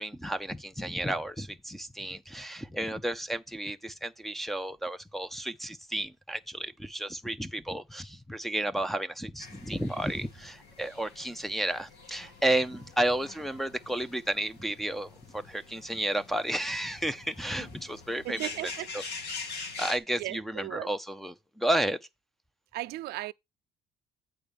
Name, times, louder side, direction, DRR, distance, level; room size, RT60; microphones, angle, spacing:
voice 1, 0.0-19.0 19.3-22.0, right 1 dB, ahead, 0.7 m, -32 dB
sound 1, 9.4-20.0, left 4 dB, 75° left, 2.3 m, -45 dB
voice 2, 18.2-18.9 20.2-20.9 22.7-23.3, right 17 dB, 70° right, 0.4 m, -36 dB
8.6 x 4.5 x 5.2 m
cardioid pair, 110°, 17 cm